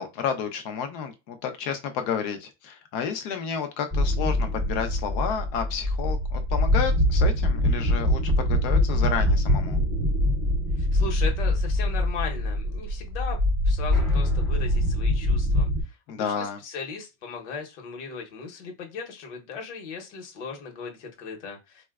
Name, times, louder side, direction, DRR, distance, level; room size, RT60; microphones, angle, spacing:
voice 1, 0.0-9.8 16.1-16.6, left 7 dB, 35° left, 7 dB, 0.4 m, -31 dB
sound 1, 3.9-15.8, left 1 dB, ahead, 0.8 m, -23 dB
voice 2, 10.8-13.4 13.6-21.8, left 5 dB, 65° left, 2 dB, 0.9 m, -37 dB
4.2 x 2.1 x 2.3 m, 0.26 s
supercardioid pair, 160°, 37 cm